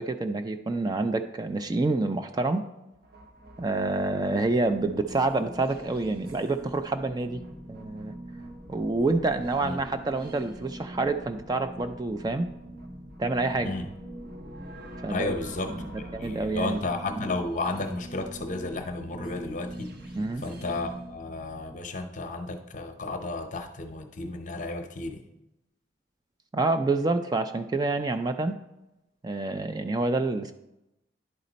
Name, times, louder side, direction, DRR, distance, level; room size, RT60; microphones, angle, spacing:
voice 1, 0.0-2.6 3.6-7.4 7.7-8.1 8.7-12.5 13.2-13.7 15.0-15.3 15.8-16.8 17.1-17.3 20.1-20.4 26.5-28.6 29.2-30.5, right 3 dB, 20° right, 8 dB, 0.3 m, -27 dB
sound 1, 2.9-21.8, right 1 dB, 55° right, 0.9 m, -43 dB
voice 2, 15.1-19.9 20.4-25.2, left 2 dB, 45° left, 6 dB, 0.7 m, -33 dB
10.5 x 4.2 x 4.0 m, 0.90 s
head